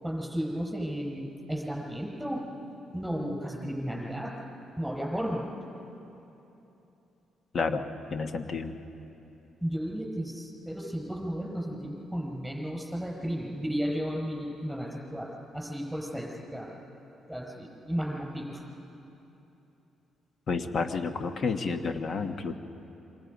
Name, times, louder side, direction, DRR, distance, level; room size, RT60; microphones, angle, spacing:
voice 1, 0.0-2.4 2.9-4.3 4.8-5.5 9.6-16.7 17.3-18.6, equal, ahead, -2 dB, 5.5 m, -34 dB
voice 2, 7.5-8.7 20.5-22.5, left 4 dB, 50° left, 7 dB, 1.4 m, -30 dB
27.5 x 24.5 x 5.4 m, 3.0 s
cardioid pair, 90°, 0 cm